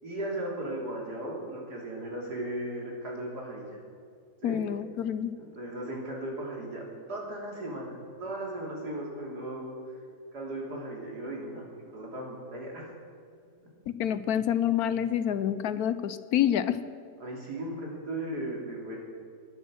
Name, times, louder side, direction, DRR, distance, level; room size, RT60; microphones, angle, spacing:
voice 1, 0.0-3.7 4.4-4.6 5.4-6.8 7.1-9.7 10.3-12.9 17.2-19.0, right 1 dB, 75° right, -2 dB, 3.9 m, -36 dB
voice 2, 4.4-5.3 13.9-16.8, left 10 dB, 70° left, 13 dB, 1.1 m, -27 dB
19.5 x 11.0 x 6.4 m, 2.1 s
omnidirectional pair, 1.7 m